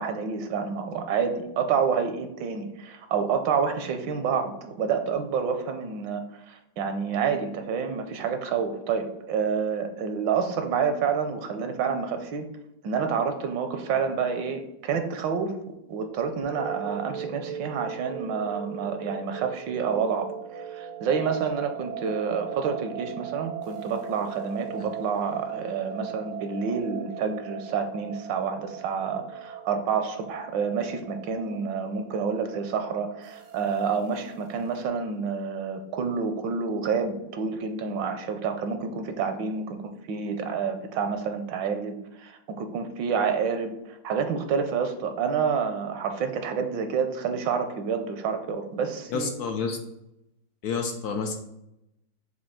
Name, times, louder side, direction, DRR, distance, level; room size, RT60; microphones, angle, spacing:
voice 1, 0.0-12.5 12.8-49.3, right 6 dB, 75° right, 7 dB, 1.4 m, -28 dB
sound 1, 16.4-34.8, right 8 dB, 60° right, 0.9 m, -39 dB
voice 2, 49.1-49.8 50.6-51.3, left 5 dB, 65° left, 4 dB, 1.1 m, -29 dB
6.3 x 2.7 x 5.5 m, 0.86 s
omnidirectional pair, 2.0 m